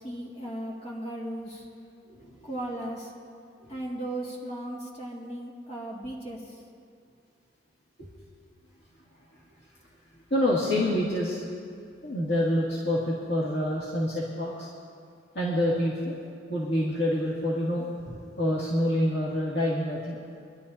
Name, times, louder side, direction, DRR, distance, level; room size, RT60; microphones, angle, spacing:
voice 1, 0.0-1.7 2.4-3.1 3.7-6.6, right 1 dB, 35° left, -4 dB, 2.2 m, -36 dB
voice 2, 2.1-2.5 3.7-3.8 8.0-8.1 10.3-11.4 12.0-14.7 15.3-16.2 16.5-17.8 18.4-20.2, left 1 dB, 80° left, -7 dB, 2.3 m, -27 dB
25.5 x 12.0 x 2.8 m, 2.3 s
head